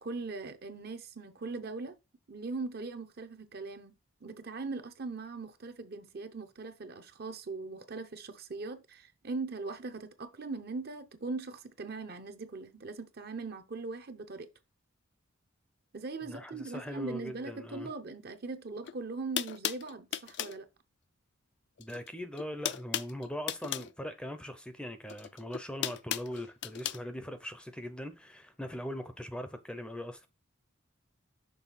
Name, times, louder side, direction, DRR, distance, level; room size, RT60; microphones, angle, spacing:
voice 1, 0.0-2.0 2.3-3.9 4.2-14.5 15.9-20.7, right 3 dB, 50° right, 0.7 m, -40 dB
voice 2, 16.2-17.9 21.8-30.3, equal, 5° left, 0.5 m, -41 dB
sound 1, 18.8-18.9 19.4-20.6 21.8-22.1 22.3-23.9 25.1-27.0, left 11 dB, 55° left, 0.4 m, -36 dB
6.3 x 3.2 x 5.7 m
head